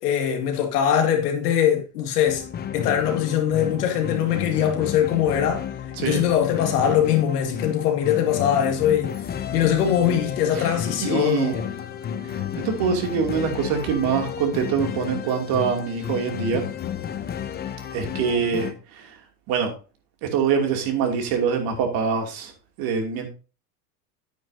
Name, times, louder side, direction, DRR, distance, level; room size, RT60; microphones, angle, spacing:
voice 1, 0.0-2.4 2.7-5.7 6.0-9.2 9.5-11.7, left 9 dB, 85° left, 2.3 m, -22 dB
sound 1, 2.2-18.7, left 9 dB, 20° left, 0.7 m, -32 dB
voice 2, 11.0-11.6 12.6-16.6 17.9-19.1 19.5-19.7 20.2-22.5 22.8-23.3, right 6 dB, 50° right, 2.8 m, -24 dB
9.5 x 9.1 x 2.8 m
supercardioid pair, 120°, 45 cm